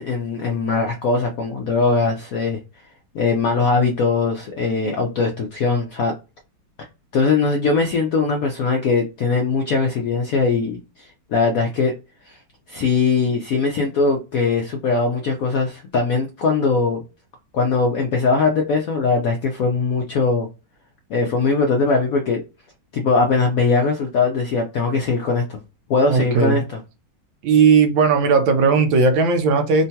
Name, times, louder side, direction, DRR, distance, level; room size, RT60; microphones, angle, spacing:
voice 1, 0.0-2.6 3.1-6.1 7.1-11.9 12.3-12.4 12.7-17.0 17.5-20.5 21.1-22.4 22.9-25.6 25.9-26.8, left 4 dB, 80° left, 0.7 m, -20 dB
voice 2, 26.1-26.6 27.4-29.9, right 5 dB, 75° right, 1.4 m, -16 dB
3.7 x 2.2 x 2.7 m
omnidirectional pair, 2.1 m